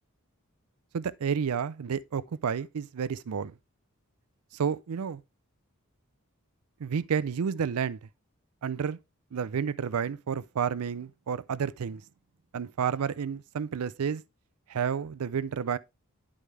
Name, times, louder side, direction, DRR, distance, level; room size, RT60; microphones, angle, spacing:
voice 1, 0.9-3.5 4.5-5.2 6.8-8.0 8.6-9.0 9.3-12.0 12.5-14.2 14.7-15.8, right 7 dB, 85° right, 0.4 m, -30 dB
11.0 x 4.9 x 3.3 m
head